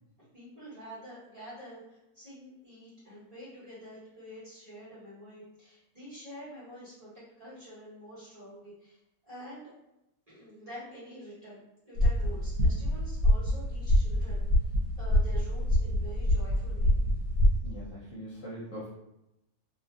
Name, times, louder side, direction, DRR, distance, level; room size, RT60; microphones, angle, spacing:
voice 1, 0.3-7.1 7.4-9.0 9.2-9.7 10.3-14.5 15.0-16.9, equal, 30° right, -10 dB, 1.0 m, -47 dB
sound 1, 12.0-17.6, equal, 85° right, 1.1 m, -26 dB
voice 2, 17.6-18.9, equal, 65° left, -8 dB, 1.0 m, -41 dB
2.6 x 2.4 x 2.3 m, 0.89 s
omnidirectional pair, 1.6 m